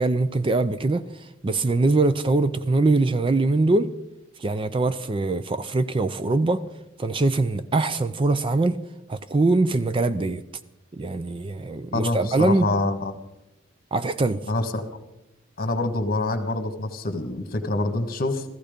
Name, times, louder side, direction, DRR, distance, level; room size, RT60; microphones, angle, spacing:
voice 1, 0.0-3.9 4.4-6.6 7.0-8.8 9.1-10.4 10.9-12.7 13.9-14.4, right 2 dB, 25° right, 0.4 m, -22 dB
voice 2, 11.9-13.1 14.5-14.8 15.6-18.4, left 2 dB, 45° left, 1.5 m, -26 dB
15.0 x 14.5 x 5.1 m
head